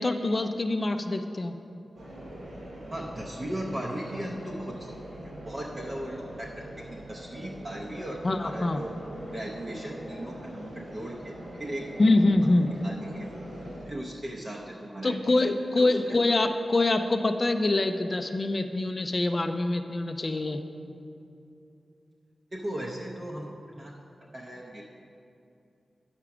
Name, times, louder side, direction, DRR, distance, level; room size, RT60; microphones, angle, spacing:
voice 1, 0.0-1.6 8.2-8.8 12.0-12.7 15.0-20.6, left 2 dB, 30° left, 6 dB, 0.4 m, -25 dB
sound 1, 1.9-13.8, right 1 dB, 85° right, 2.4 m, -42 dB
voice 2, 2.9-9.0 9.3-13.3 13.9-15.4 15.8-16.2 22.5-23.9 24.2-24.8, right 1 dB, 30° right, -3 dB, 0.7 m, -38 dB
8.8 x 5.9 x 5.9 m, 2.6 s
wide cardioid pair, 155°, 0 cm